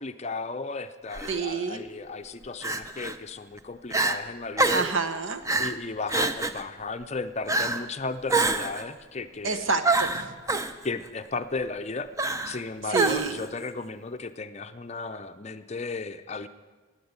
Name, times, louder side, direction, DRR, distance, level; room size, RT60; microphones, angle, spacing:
voice 1, 0.0-4.9 5.6-9.7 10.8-12.1 12.4-16.5, left 3 dB, 30° left, 9 dB, 0.6 m, -35 dB
Crying sobbing, 1.1-1.4 2.6-3.2 3.6-3.7 3.9-4.2 4.6-5.0 5.5-5.8 6.1-6.6 7.5-7.9 8.3-8.8 9.8-10.7 12.2-12.6 12.9-13.5, right 3 dB, 15° right, 0.5 m, -26 dB
voice 2, 1.3-1.8 4.7-5.4 9.4-10.4 12.9-13.4, right 4 dB, 65° right, 8 dB, 1.2 m, -28 dB
15.5 x 9.6 x 8.1 m, 1.4 s
head